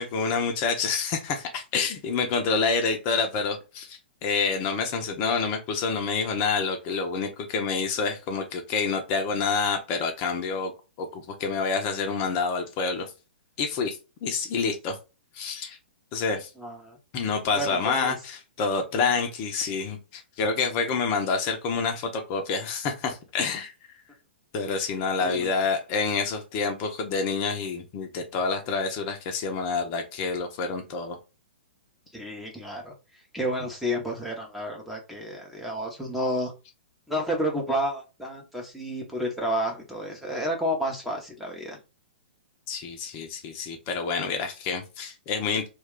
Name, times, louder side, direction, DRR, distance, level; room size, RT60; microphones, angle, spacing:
voice 1, 0.0-10.7 11.0-13.1 13.6-15.0 15.3-15.8 16.1-16.5 17.1-23.7 24.5-31.2 42.7-45.7, left 5 dB, 35° left, 4 dB, 0.6 m, -28 dB
voice 2, 16.6-17.0 17.5-18.1 25.2-25.5 32.1-32.9 33.3-36.5 37.1-41.8, equal, ahead, -1 dB, 0.7 m, -30 dB
2.3 x 2.3 x 3.6 m, 0.29 s
figure-of-eight pair, 115°, 6 cm